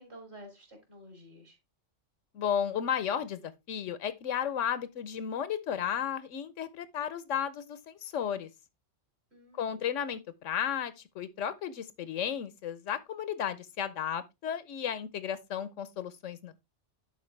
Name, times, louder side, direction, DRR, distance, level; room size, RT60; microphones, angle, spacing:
voice 1, 0.0-1.6 9.3-9.9, equal, 60° right, 3.4 m, -51 dB
voice 2, 2.3-8.5 9.6-16.6, left 8 dB, 90° left, 1.1 m, -34 dB
11.0 x 4.5 x 3.2 m
omnidirectional pair, 1.2 m